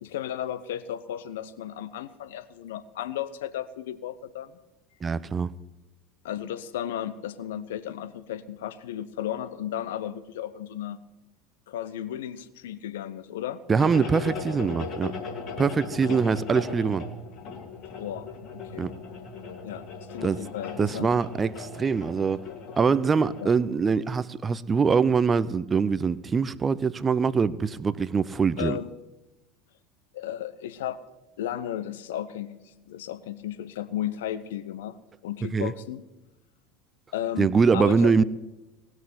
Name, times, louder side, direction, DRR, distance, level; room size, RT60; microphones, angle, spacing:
voice 1, 0.0-4.6 6.2-11.0 11.7-13.6 18.0-18.9 19.6-21.1 23.4-23.5 28.6-28.9 30.1-31.0 31.4-32.6 32.9-35.0 35.2-36.0 37.1-37.5 37.7-38.1, left 11 dB, 65° left, 0.8 m, -34 dB
voice 2, 5.0-5.5 13.7-15.1 15.6-17.1 18.8-18.9 20.2-20.4 20.8-22.5 22.8-28.8 35.5-35.7 37.4-38.2, right 5 dB, 25° right, 0.6 m, -23 dB
sound 1, 13.8-23.4, left 4 dB, 50° left, 2.4 m, -38 dB
18.5 x 6.3 x 9.2 m
figure-of-eight pair, 70°, 0 cm